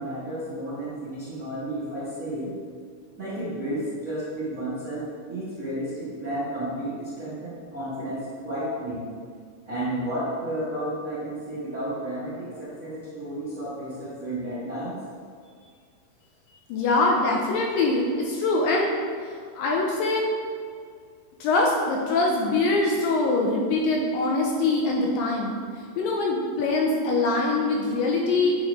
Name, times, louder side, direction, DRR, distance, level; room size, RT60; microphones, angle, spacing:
voice 1, 0.0-2.5 3.2-9.0 9.7-15.0, right 1 dB, 55° right, -11 dB, 0.9 m, -32 dB
voice 2, 16.7-18.9 19.2-20.3 21.4-25.6 26.0-28.6, left 2 dB, 80° left, -1 dB, 2.1 m, -23 dB
8.7 x 4.1 x 3.5 m, 2.1 s
omnidirectional pair, 4.4 m